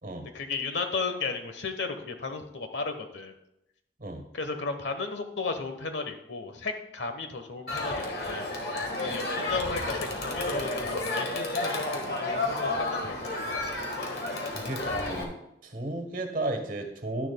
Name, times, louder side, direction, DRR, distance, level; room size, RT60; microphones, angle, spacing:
voice 1, 0.3-3.3 4.3-8.6 9.0-13.4, left 4 dB, 85° left, 7 dB, 1.1 m, -34 dB
Crowd, 7.7-15.2, left 2 dB, 65° left, 1.6 m, -31 dB
voice 2, 14.5-15.3 15.6-17.3, right 2 dB, 45° right, 6 dB, 1.4 m, -34 dB
11.5 x 10.5 x 2.3 m, 0.82 s
head